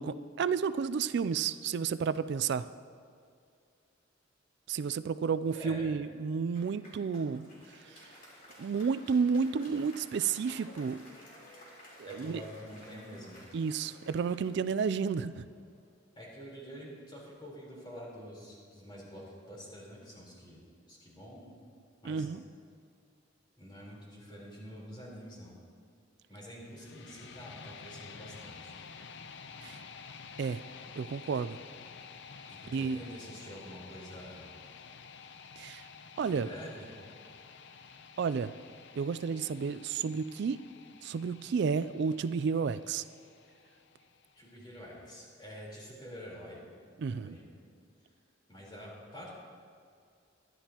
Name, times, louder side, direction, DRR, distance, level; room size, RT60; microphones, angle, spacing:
voice 1, 0.0-2.7 4.7-7.5 7.9-8.0 8.6-11.0 12.0-12.4 13.5-15.4 22.0-22.4 29.6-29.8 30.4-30.6 31.0-31.6 32.7-33.0 35.6-35.9 36.2-36.5 38.2-38.5 39.0-40.6 41.0-43.1 47.0-47.4, right 6 dB, 60° right, 14 dB, 0.3 m, -31 dB
voice 2, 5.5-5.9 12.0-13.4 16.1-20.6 20.9-21.5 22.0-22.3 23.6-25.5 26.3-28.7 32.5-34.5 36.3-36.9 44.4-46.6 47.1-47.5 48.5-49.3, equal, 25° left, -5 dB, 3.9 m, -47 dB
Applause, 6.5-15.9, equal, 45° left, 3.4 m, -55 dB
sound 1, 26.7-44.7, left 5 dB, 60° left, 0.6 m, -51 dB
23.0 x 11.0 x 2.9 m, 2.3 s
head